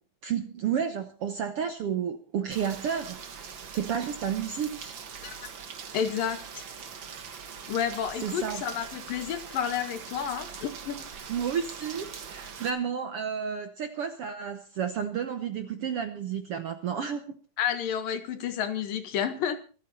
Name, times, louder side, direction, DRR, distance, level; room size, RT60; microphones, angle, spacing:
voice 1, 0.2-3.2 3.7-4.9 8.2-8.6 11.3-17.4, right 7 dB, 65° right, 8 dB, 1.4 m, -31 dB
Rain, 2.5-12.7, right 6 dB, 50° right, 1.7 m, -42 dB
voice 2, 5.9-6.4 7.7-11.1 17.6-19.6, left 8 dB, 85° left, 8 dB, 3.4 m, -30 dB
25.5 x 9.4 x 4.4 m, 0.37 s
omnidirectional pair, 3.9 m